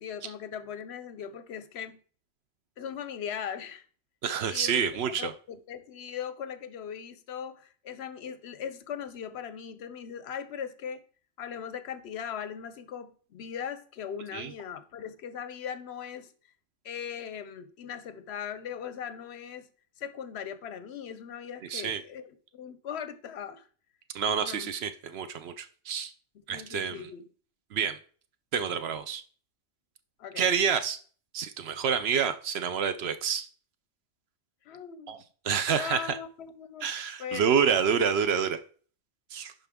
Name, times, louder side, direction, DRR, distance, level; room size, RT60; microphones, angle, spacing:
voice 1, 0.0-2.0 2.8-3.8 4.5-11.0 11.4-16.3 16.8-19.7 20.0-23.7 24.4-24.7 26.5-27.2 30.2-30.5 34.6-35.2 35.7-36.9 37.2-37.6, left 8 dB, 65° left, 0.8 m, -39 dB
voice 2, 4.2-5.3 14.3-14.5 21.7-22.0 24.1-26.1 26.5-27.0 27.7-28.0 28.5-29.2 30.4-31.0 31.3-33.5 35.1-35.2 35.4-36.2 36.8-38.6 39.3-39.5, right 7 dB, 65° right, 0.7 m, -28 dB
11.0 x 3.8 x 3.5 m
omnidirectional pair, 1.3 m